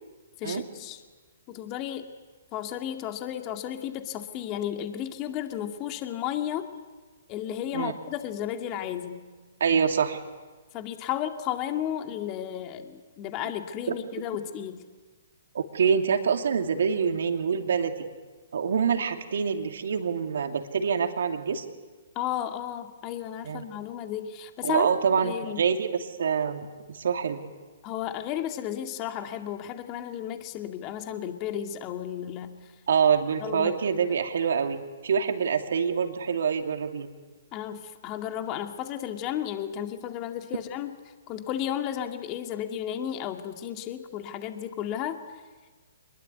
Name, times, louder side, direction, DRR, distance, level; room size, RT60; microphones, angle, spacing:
voice 1, 0.4-1.0 1.5-2.1 2.5-6.7 7.3-9.2 10.7-14.8 22.2-24.9 25.2-25.6 27.8-32.6 33.4-33.8 37.5-40.9 41.3-45.2, left 10 dB, 30° left, 6 dB, 2.3 m, -33 dB
voice 2, 9.6-10.2 15.5-17.9 18.5-21.6 23.4-23.6 24.6-27.4 32.9-37.1, right 6 dB, 65° right, 5 dB, 2.8 m, -26 dB
26.0 x 21.5 x 9.4 m, 1.3 s
figure-of-eight pair, 125°, 0 cm